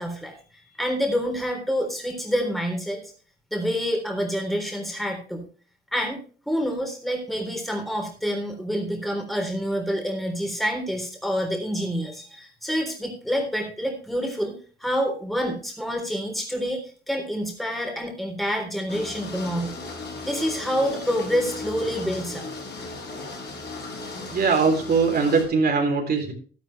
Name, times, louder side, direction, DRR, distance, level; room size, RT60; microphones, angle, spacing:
voice 1, 0.0-3.0 3.5-5.4 5.9-14.5 14.8-19.7 20.2-22.5, equal, ahead, 2 dB, 3.8 m, -27 dB
sound 1, 18.9-25.5, left 3 dB, 55° left, 6.0 m, -36 dB
voice 2, 24.3-26.3, right 4 dB, 55° right, 2 dB, 3.5 m, -21 dB
12.0 x 11.5 x 3.3 m, 0.39 s
cardioid pair, 90°, 20 cm